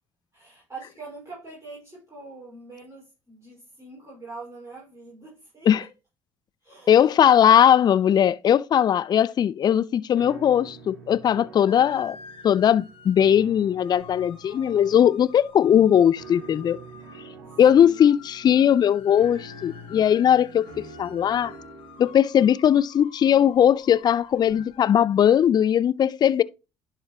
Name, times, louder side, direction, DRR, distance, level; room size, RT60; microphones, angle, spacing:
voice 1, 0.3-5.9 6.6-7.1 11.5-12.1 17.4-18.1, right 3 dB, 25° right, 5.0 m, -44 dB
voice 2, 6.9-12.2 12.4-16.8 17.6-21.5 22.0-26.4, left 9 dB, 40° left, 0.4 m, -19 dB
sound 1, 10.2-22.2, right 2 dB, 85° right, 1.6 m, -46 dB
sound 2, 11.7-24.8, left 6 dB, 60° left, 1.3 m, -49 dB
11.0 x 4.8 x 2.8 m
hypercardioid pair, 55°, 10 cm